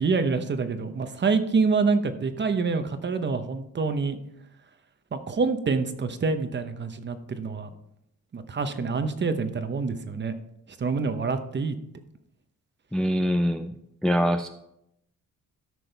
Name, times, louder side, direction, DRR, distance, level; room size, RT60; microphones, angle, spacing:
voice 1, 0.0-4.2 5.1-7.7 8.3-10.3 10.8-11.7, right 4 dB, 35° right, 9 dB, 0.8 m, -26 dB
voice 2, 12.9-13.7 14.0-14.5, equal, ahead, 6 dB, 0.4 m, -24 dB
13.5 x 6.2 x 3.4 m, 0.78 s
cardioid pair, 120°, 33 cm